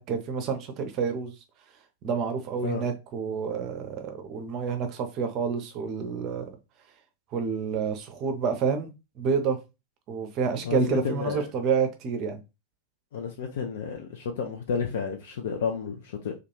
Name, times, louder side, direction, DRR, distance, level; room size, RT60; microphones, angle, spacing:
voice 1, 0.0-1.3 2.0-6.5 7.3-8.9 9.2-9.6 10.1-12.4, right 5 dB, 35° right, 0.5 m, -28 dB
voice 2, 10.6-11.4 13.1-16.3, left 6 dB, 55° left, 0.4 m, -31 dB
2.3 x 2.3 x 3.0 m
figure-of-eight pair, 90°, 0 cm